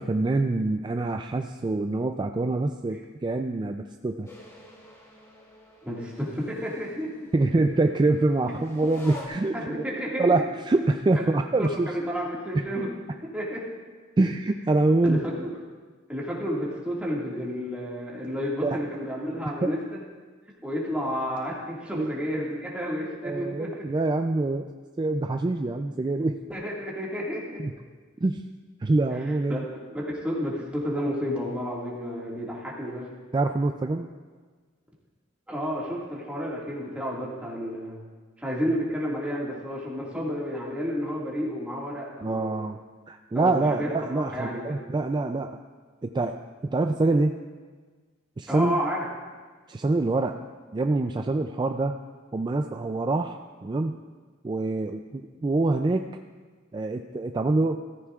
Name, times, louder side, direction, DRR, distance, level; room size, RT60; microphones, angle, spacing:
voice 1, 0.0-4.3 7.3-9.5 10.2-11.9 12.5-12.7 14.2-15.2 18.6-18.8 19.6-19.7 21.9-22.1 23.2-24.7 25.0-26.4 27.6-27.7 28.2-28.4 28.8-29.6 33.3-34.1 42.2-42.8 43.1-45.6 46.0-47.3 48.4-48.8 49.7-50.4 50.7-52.0 52.3-53.9 54.4-56.0 56.7-57.8, right 2 dB, 25° right, 5 dB, 0.3 m, -25 dB
sound 1, 4.3-9.3, left 1 dB, 15° left, 2.4 m, -48 dB
voice 2, 5.8-7.1 9.5-10.4 11.1-11.2 11.6-12.9 13.3-13.7 15.0-15.5 16.1-20.0 20.6-23.8 26.5-27.6 29.5-33.1 35.5-38.0 38.4-42.5 43.3-44.9 48.5-49.0, equal, 5° right, -5 dB, 1.9 m, -31 dB
14.5 x 14.0 x 2.4 m, 1.4 s
head